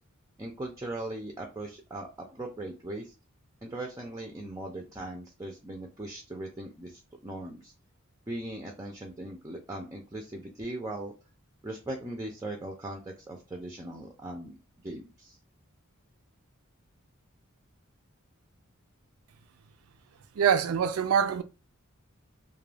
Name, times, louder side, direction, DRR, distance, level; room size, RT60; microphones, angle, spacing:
voice 1, 0.4-3.1 3.6-7.7 8.3-11.1 11.6-14.5 14.8-15.4, right 1 dB, 15° right, 0.4 m, -39 dB
voice 2, 20.4-21.4, right 7 dB, 80° right, 0.4 m, -24 dB
2.3 x 2.2 x 3.2 m
head